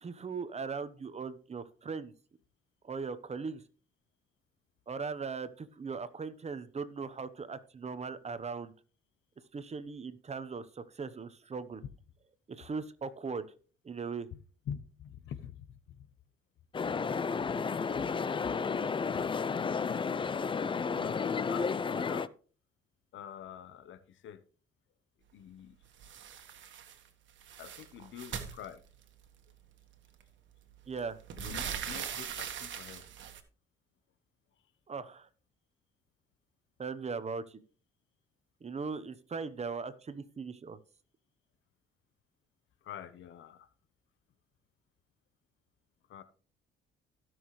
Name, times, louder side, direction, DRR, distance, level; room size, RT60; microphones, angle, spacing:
voice 1, 0.0-2.1 2.8-3.6 4.9-8.7 9.5-11.8 12.5-13.5 13.8-14.3 30.9-31.2 34.9-35.3 36.8-37.6 38.6-40.8, right 5 dB, 35° right, 1.0 m, -39 dB
voice 2, 14.3-16.1 16.8-17.0 17.3-17.4 17.9-18.1 18.7-22.3 23.1-24.4 25.3-25.8 27.6-28.8 31.4-33.0 42.8-43.7 46.1-46.2, left 9 dB, 75° left, 1.0 m, -47 dB
sound 1, 16.7-22.3, left 5 dB, 25° left, 0.5 m, -32 dB
sound 2, 26.0-27.0 27.3-29.3 30.2-30.3 30.7-33.4, right 8 dB, 70° right, 1.6 m, -41 dB
16.5 x 6.3 x 3.2 m
cardioid pair, 90°, 20 cm